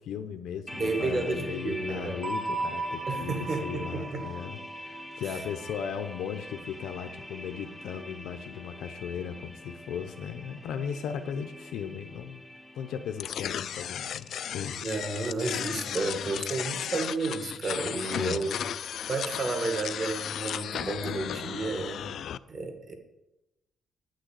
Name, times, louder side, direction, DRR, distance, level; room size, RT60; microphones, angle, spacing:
voice 1, 0.0-12.4 12.7-14.9 18.1-18.7, left 7 dB, 75° left, 8 dB, 0.7 m, -37 dB
sound 1, 0.7-15.2, left 1 dB, 5° left, 0.6 m, -44 dB
voice 2, 0.7-2.2 3.1-4.3 5.2-5.4 14.8-18.6 19.1-22.2 22.5-22.9, right 3 dB, 35° right, 6 dB, 1.5 m, -32 dB
sound 2, 2.2-6.9, right 3 dB, 70° right, 2.0 m, -37 dB
sound 3, 13.2-22.4, left 9 dB, 55° left, 0.3 m, -35 dB
9.6 x 6.4 x 8.2 m, 0.93 s
cardioid pair, 170°, 0 cm